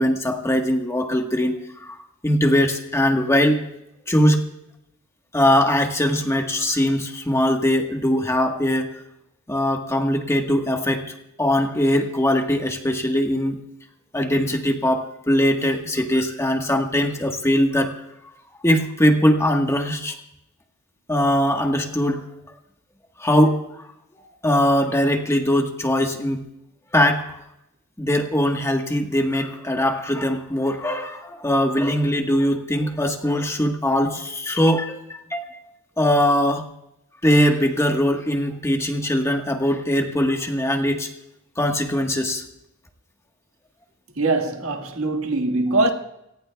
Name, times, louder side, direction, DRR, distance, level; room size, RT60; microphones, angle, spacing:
voice 1, 0.0-2.0 2.2-3.6 4.1-4.4 5.3-8.9 9.5-11.0 11.4-13.6 14.1-18.0 18.6-20.1 21.1-22.2 23.2-23.6 24.2-26.4 26.9-27.4 28.0-35.0 35.3-35.6 36.0-36.7 37.2-41.1 41.6-42.4, left 1 dB, 15° left, 1.3 m, -21 dB
voice 2, 44.2-45.9, right 2 dB, 75° right, 1.7 m, -22 dB
27.0 x 18.0 x 2.3 m
head